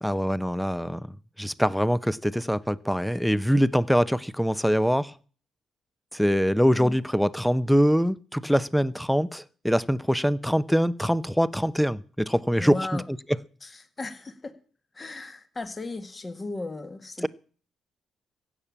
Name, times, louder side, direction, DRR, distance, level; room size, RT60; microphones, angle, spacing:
voice 1, 0.0-1.1 1.4-5.1 6.1-13.0, equal, ahead, 0.7 m, -24 dB
voice 2, 12.6-13.1 13.6-14.5 14.9-17.3, left 2 dB, 25° left, 1.8 m, -36 dB
16.0 x 7.4 x 8.5 m
cardioid pair, 90°, 0 cm